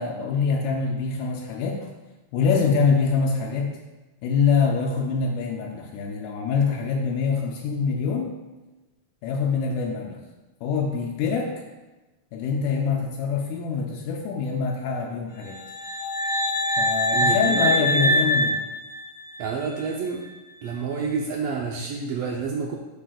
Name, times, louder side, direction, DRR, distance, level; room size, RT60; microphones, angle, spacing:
voice 1, 0.0-1.9 2.3-3.8 4.2-8.4 9.2-10.2 10.6-11.5 12.3-15.6 16.8-18.6, left 5 dB, 85° left, 0 dB, 2.1 m, -24 dB
sound 1, 15.5-19.5, left 1 dB, 55° left, 1.6 m, -24 dB
voice 2, 17.1-18.2 19.4-20.2 20.6-22.8, right 5 dB, 90° right, 0 dB, 1.4 m, -29 dB
7.5 x 6.2 x 2.3 m, 1.1 s
omnidirectional pair, 3.4 m